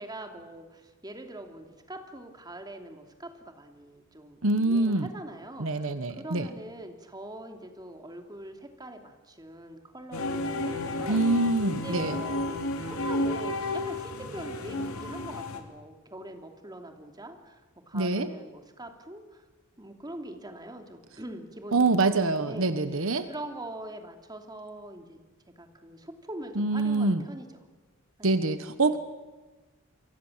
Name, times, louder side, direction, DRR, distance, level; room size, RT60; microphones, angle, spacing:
voice 1, 0.0-11.2 11.8-12.4 12.8-17.6 17.9-19.4 19.8-22.2 22.5-25.2 25.6-27.5 28.2-28.3 28.9-29.0, right 1 dB, 20° right, 4 dB, 2.8 m, -43 dB
voice 2, 4.4-5.1 5.6-6.5 11.1-12.1 17.9-18.3 21.7-23.3 26.6-27.2 28.2-29.0, right 2 dB, 65° right, 10 dB, 1.2 m, -25 dB
sound 1, 10.1-15.6, left 2 dB, 80° left, 3.3 m, -32 dB
29.0 x 23.5 x 7.4 m, 1.3 s
head